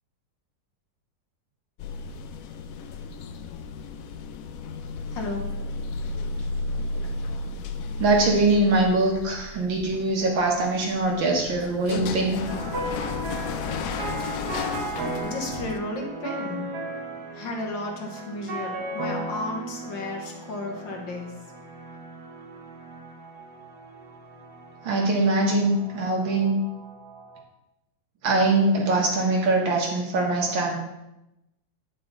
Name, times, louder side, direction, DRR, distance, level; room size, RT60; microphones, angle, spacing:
sound 1, 1.8-15.8, left 4 dB, 90° left, 0.7 m, -33 dB
voice 1, 5.1-5.5 15.2-16.7 17.3-21.3, left 2 dB, 75° left, 1 dB, 1.9 m, -33 dB
voice 2, 8.0-12.4 24.8-26.6 28.2-30.7, right 2 dB, 85° right, -1 dB, 2.3 m, -22 dB
sound 2, 12.5-27.4, right 3 dB, 60° right, 1.6 m, -36 dB
9.0 x 5.7 x 4.0 m, 0.91 s
omnidirectional pair, 2.0 m